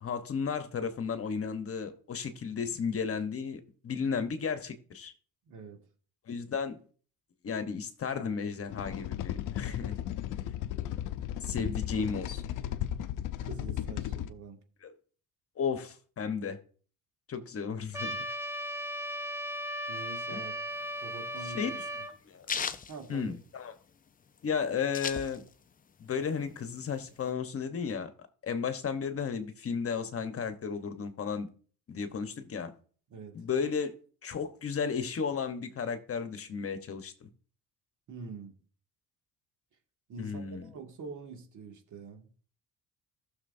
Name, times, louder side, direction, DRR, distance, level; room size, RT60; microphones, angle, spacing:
voice 1, 0.0-5.1 6.3-6.8 7.4-10.0 11.4-12.4 14.8-14.9 15.6-16.6 17.3-18.2 20.3-20.4 21.4-21.8 22.3-22.5 23.1-23.7 24.4-25.4 26.0-28.1 28.4-31.5 31.9-32.7 33.3-34.0 34.2-37.3 40.2-40.6, left 6 dB, 45° left, 1.1 m, -34 dB
voice 2, 5.5-5.8 11.5-11.7 13.4-14.6 19.9-20.6 21.0-21.8 22.9-23.3 33.1-33.4 38.1-38.6 40.1-42.3, right 4 dB, 60° right, 2.1 m, -45 dB
sound 1, 8.7-14.3, left 11 dB, 65° left, 0.6 m, -35 dB
Trumpet, 17.9-22.1, equal, 10° right, 1.6 m, -36 dB
sound 2, 20.7-23.9 24.2-24.3 24.5-25.8 26.1-27.3, left 6 dB, 25° left, 0.5 m, -37 dB
14.5 x 6.4 x 2.7 m
cardioid pair, 110°, 33 cm